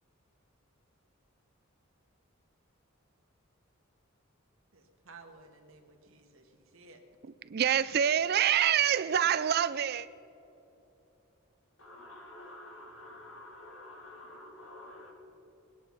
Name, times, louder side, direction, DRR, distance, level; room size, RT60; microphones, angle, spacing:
voice 1, 4.7-7.0, right 3 dB, 75° right, 4 dB, 1.8 m, -55 dB
voice 2, 7.5-10.1, right 9 dB, 50° right, 16 dB, 0.4 m, -26 dB
voice 3, 11.8-15.1, left 1 dB, 80° left, -1 dB, 3.7 m, -49 dB
20.5 x 10.5 x 5.7 m, 3.0 s
head